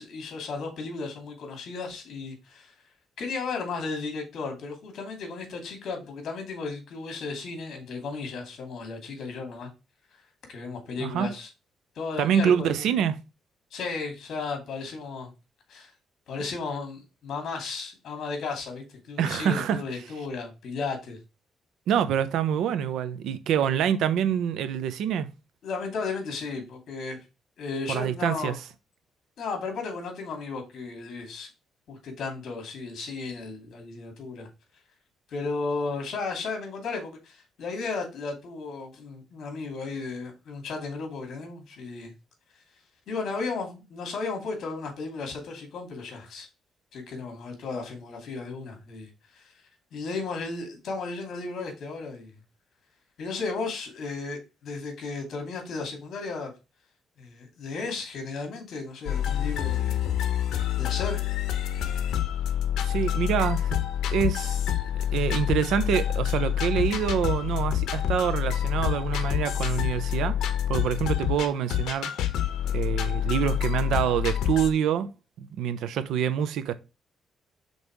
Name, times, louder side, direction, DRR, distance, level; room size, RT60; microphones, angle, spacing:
voice 1, 0.0-2.7 3.2-9.7 10.5-11.5 12.0-12.9 13.7-15.3 15.7-15.9 16.3-21.2 25.6-27.2 27.6-28.6 29.4-31.5 31.9-34.5 35.3-42.1 43.1-46.5 46.9-49.5 49.9-52.3 53.2-56.5 57.2-60.0 60.5-61.2, left 4 dB, 60° left, 2.6 m, -34 dB
voice 2, 12.2-13.2 19.2-19.8 21.9-25.3 27.9-28.6 62.8-63.8 64.1-64.6 65.1-72.1 72.7-75.1 75.4-76.7, right 8 dB, 85° right, 0.7 m, -26 dB
sound 1, 59.1-74.7, left 10 dB, 85° left, 0.9 m, -27 dB
5.4 x 4.0 x 4.6 m
cardioid pair, 140°, 0 cm